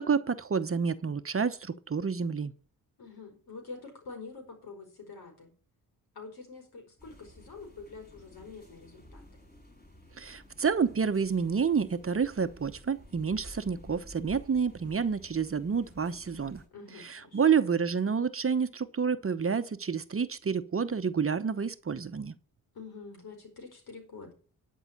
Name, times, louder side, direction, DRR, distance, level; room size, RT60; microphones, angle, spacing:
voice 1, 0.0-2.5 10.2-16.6 17.0-22.3, right 6 dB, 35° right, 0.9 m, -29 dB
voice 2, 3.0-5.5 6.1-9.4 16.7-17.5 22.7-24.3, left 4 dB, 75° left, 4.5 m, -46 dB
sound 1, 7.0-16.7, left 1 dB, 25° left, 4.5 m, -53 dB
11.0 x 5.6 x 8.7 m
cardioid pair, 65°, 37 cm